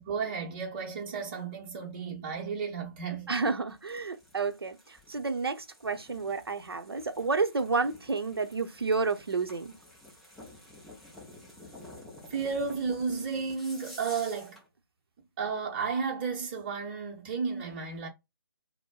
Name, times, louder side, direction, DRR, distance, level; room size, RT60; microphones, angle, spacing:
voice 1, 0.0-3.3 12.3-14.6 15.4-18.1, right 5 dB, 25° right, 0.9 m, -33 dB
voice 2, 3.3-9.7, right 4 dB, 75° right, 0.7 m, -30 dB
sound 1, 3.7-14.7, left 1 dB, ahead, 0.4 m, -51 dB
4.2 x 2.1 x 2.3 m
figure-of-eight pair, 150°, 13 cm